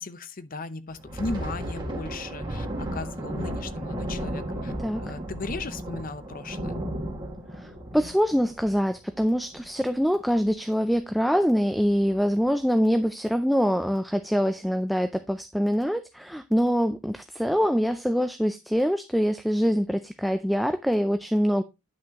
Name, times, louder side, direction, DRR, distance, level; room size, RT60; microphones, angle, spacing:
voice 1, 0.0-4.7 5.0-6.8, left 3 dB, 45° left, 0.7 m, -36 dB
Thunder, 0.9-10.0 10.3-10.5 10.9-11.2 11.8-12.3, right 1 dB, 25° right, 1.9 m, -34 dB
voice 2, 7.6-21.6, equal, ahead, 0.4 m, -24 dB
10.0 x 5.9 x 3.0 m
head